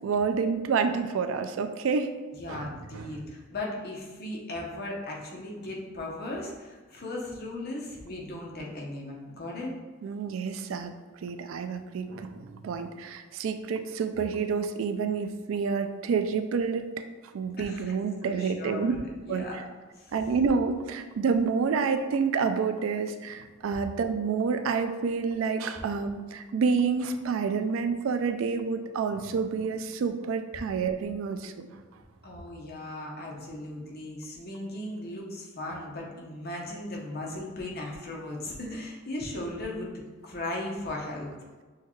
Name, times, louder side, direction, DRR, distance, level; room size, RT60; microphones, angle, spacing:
voice 1, 0.0-2.1 2.5-3.2 10.0-10.9 11.2-16.9 17.3-18.9 19.3-19.5 20.1-31.7, right 5 dB, 70° right, 8 dB, 0.3 m, -28 dB
voice 2, 2.3-9.7 17.6-17.9 18.2-19.0 19.3-19.7 20.0-20.1 32.2-39.9 40.2-41.3, left 1 dB, 50° left, -1 dB, 0.8 m, -37 dB
6.2 x 2.3 x 3.1 m, 1.4 s
head